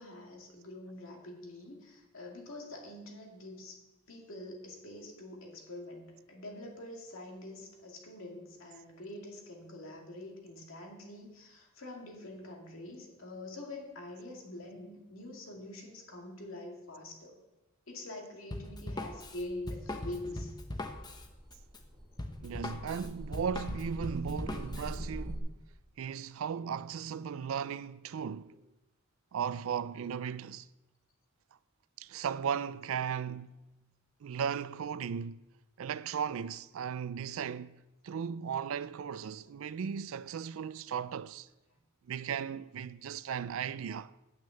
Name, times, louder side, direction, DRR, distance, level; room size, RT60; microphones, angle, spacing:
voice 1, 0.0-3.8 4.1-17.4 17.9-20.5, left 1 dB, 75° left, 2.2 m, -45 dB
Drum kit, 18.5-25.0, left 1 dB, 20° left, 0.8 m, -40 dB
sound 1, 18.5-25.4, right 1 dB, 15° right, 1.3 m, -45 dB
voice 2, 22.4-25.5 26.0-28.6 29.3-30.7 32.0-33.6 34.2-35.5 35.8-41.5 42.1-44.1, right 7 dB, 75° right, 0.4 m, -36 dB
8.8 x 6.3 x 7.7 m
head